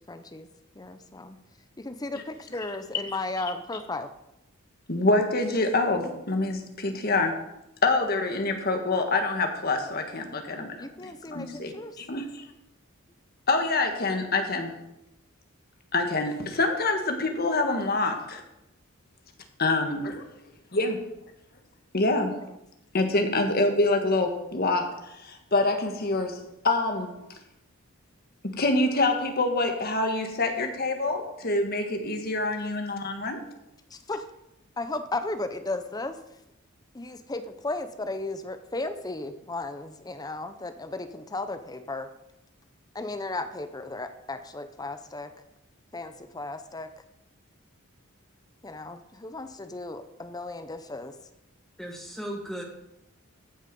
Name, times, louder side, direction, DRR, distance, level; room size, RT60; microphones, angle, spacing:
voice 1, 0.1-0.5 0.8-1.4 1.8-4.1 10.8-12.0 22.4-22.6 33.9-34.3 34.8-36.2 36.9-42.1 42.9-45.3 45.9-46.9 48.6-51.1, left 2 dB, 20° left, 9 dB, 0.7 m, -35 dB
voice 2, 4.9-7.4 7.8-12.4 13.5-14.7 15.9-18.4 19.6-20.2 20.7-21.0 21.9-22.4 22.9-27.2 28.4-33.4, left 2 dB, 45° left, 5 dB, 1.6 m, -26 dB
voice 3, 51.8-52.6, equal, ahead, 1 dB, 1.6 m, -36 dB
14.5 x 6.4 x 5.4 m, 0.85 s
head